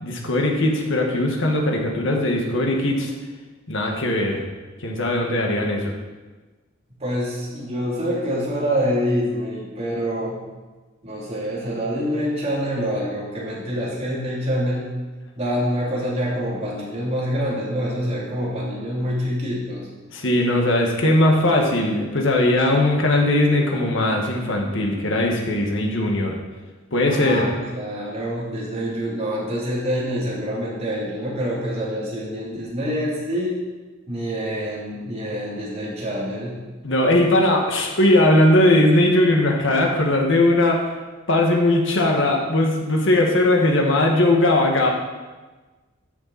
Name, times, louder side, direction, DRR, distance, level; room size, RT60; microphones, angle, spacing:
voice 1, 0.0-3.1 3.7-4.4 4.8-5.9 20.1-26.4 26.9-27.4 36.8-40.8 41.3-44.9, left 1 dB, 70° left, 0 dB, 1.8 m, -19 dB
voice 2, 7.0-10.4 11.0-14.9 15.3-19.9 27.0-33.6 34.1-36.6, equal, 35° right, -6 dB, 3.3 m, -26 dB
12.5 x 7.0 x 4.3 m, 1.3 s
head